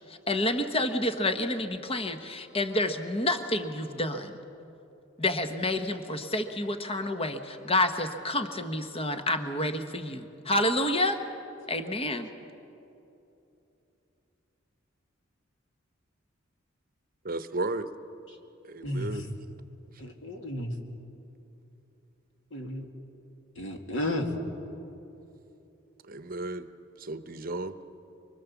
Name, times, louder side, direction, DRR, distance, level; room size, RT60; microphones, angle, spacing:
voice 1, 0.3-4.4 5.2-11.2 11.7-12.3, left 1 dB, 30° left, 7 dB, 1.2 m, -29 dB
voice 2, 17.2-17.9 18.7-19.3 26.1-26.7 27.0-27.8, right 2 dB, 45° right, 10 dB, 0.9 m, -34 dB
voice 3, 18.8-19.3 20.0-20.7 22.5-22.9 23.6-24.3, left 1 dB, 75° left, 3 dB, 2.4 m, -33 dB
24.5 x 24.0 x 7.2 m, 2.9 s
head